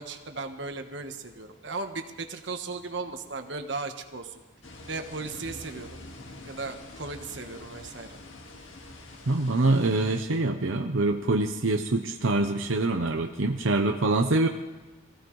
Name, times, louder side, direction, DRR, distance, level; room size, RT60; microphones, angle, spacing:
voice 1, 0.0-4.4 4.9-6.0 6.4-8.2, right 3 dB, 65° right, 6 dB, 1.3 m, -36 dB
sound 1, 4.6-10.2, left 2 dB, 85° left, 1.8 m, -45 dB
voice 2, 9.3-14.5, right 2 dB, 85° right, 4 dB, 0.8 m, -25 dB
24.0 x 16.0 x 3.2 m, 1.2 s
head